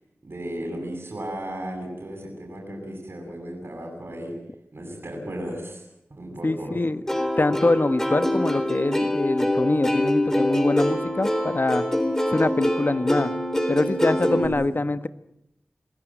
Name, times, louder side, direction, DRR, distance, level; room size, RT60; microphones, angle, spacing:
voice 1, 0.2-4.4 4.7-5.8 6.1-6.8 14.2-14.8, right 1 dB, 60° right, 0 dB, 7.5 m, -35 dB
voice 2, 6.4-7.0 7.4-11.8 12.3-13.3 13.7-15.1, left 2 dB, 50° left, 12 dB, 1.2 m, -24 dB
Plucked string instrument, 7.1-14.5, left 1 dB, 10° left, 4.1 m, -24 dB
26.5 x 16.5 x 9.2 m, 0.85 s
wide cardioid pair, 50°, 5 cm